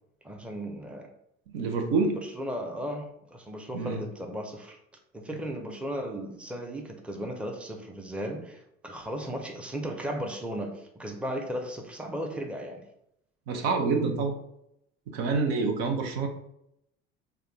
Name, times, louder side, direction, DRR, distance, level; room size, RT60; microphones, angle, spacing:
voice 1, 0.2-1.1 2.1-4.8 5.1-12.8, equal, 5° right, 3 dB, 0.6 m, -36 dB
voice 2, 1.5-2.2 3.7-4.0 13.5-14.3 15.1-16.3, right 4 dB, 70° right, 4 dB, 0.7 m, -27 dB
3.6 x 2.3 x 3.4 m, 0.77 s
hypercardioid pair, 65°, 32 cm